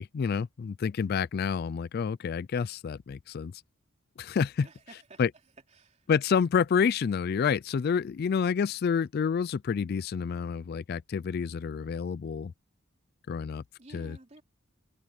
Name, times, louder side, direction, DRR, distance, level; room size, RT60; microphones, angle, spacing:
voice 1, 0.0-3.5 4.2-4.7 5.2-5.3 6.1-12.5 13.3-13.6 13.9-14.2, left 6 dB, 50° left, 0.3 m, -28 dB
voice 2, 4.6-5.3 5.7-6.1 13.8-14.4, right 2 dB, 35° right, 3.3 m, -53 dB
open air
head